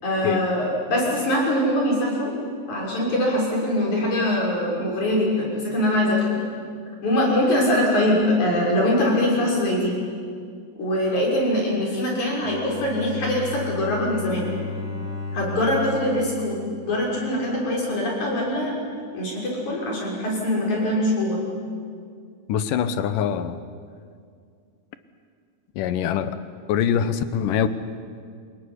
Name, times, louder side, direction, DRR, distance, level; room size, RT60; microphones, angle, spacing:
voice 1, 0.0-2.3 2.7-6.4 7.0-10.0 10.8-14.5 15.3-18.7 19.1-21.4, left 1 dB, 65° left, -3 dB, 7.5 m, -23 dB
Bowed string instrument, 12.4-17.4, left 3 dB, ahead, 3.8 m, -34 dB
voice 2, 22.5-23.6 25.8-26.4 26.7-27.7, left 8 dB, 85° left, 12 dB, 2.7 m, -23 dB
28.0 x 18.0 x 9.9 m, 2.2 s
omnidirectional pair, 3.7 m